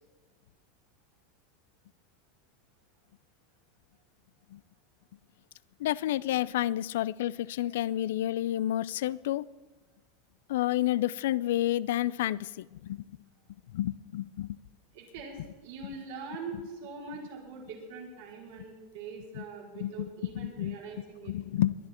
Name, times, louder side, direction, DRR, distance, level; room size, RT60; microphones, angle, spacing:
voice 1, 5.8-9.4 10.5-13.0 13.7-14.6 19.8-20.1 20.4-20.8 21.3-21.8, left 14 dB, 80° left, 20 dB, 0.4 m, -30 dB
voice 2, 14.9-21.3, right 4 dB, 75° right, -1 dB, 4.2 m, -43 dB
21.5 x 11.0 x 4.4 m, 1.3 s
supercardioid pair, 115°, 0 cm